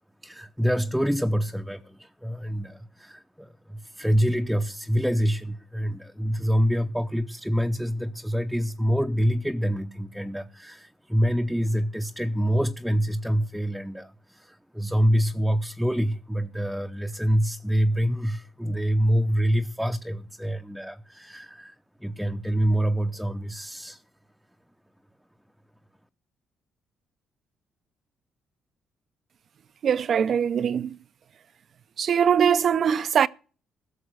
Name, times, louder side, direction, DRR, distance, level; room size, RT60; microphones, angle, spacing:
voice 1, 0.2-24.0, equal, ahead, 0.7 m, -26 dB
voice 2, 29.8-31.0 32.0-33.3, right 8 dB, 55° right, 0.5 m, -22 dB
16.0 x 6.6 x 6.4 m
cardioid pair, 90°, 0 cm